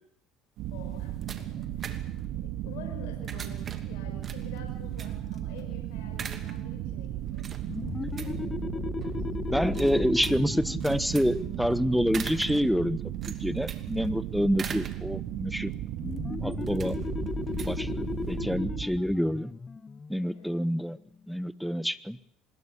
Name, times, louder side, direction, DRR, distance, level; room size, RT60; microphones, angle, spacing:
sound 1, 0.6-18.5, right 6 dB, 40° right, 2.7 m, -45 dB
sound 2, 0.6-18.9, right 12 dB, 70° right, 2.8 m, -35 dB
voice 1, 0.7-2.1 2.6-7.5 7.8-9.1 17.1-17.4 20.3-20.6, left 6 dB, 85° left, 3 dB, 5.9 m, -49 dB
sound 3, 7.6-13.0 16.0-21.3, left 4 dB, 25° left, 1.1 m, -36 dB
voice 2, 9.5-13.0 13.3-15.7 16.4-17.0 17.6-19.5 20.1-21.0 21.3-22.2, equal, ahead, 15 dB, 1.3 m, -27 dB
24.5 x 21.0 x 8.5 m, 0.67 s
supercardioid pair, 90°, 0 cm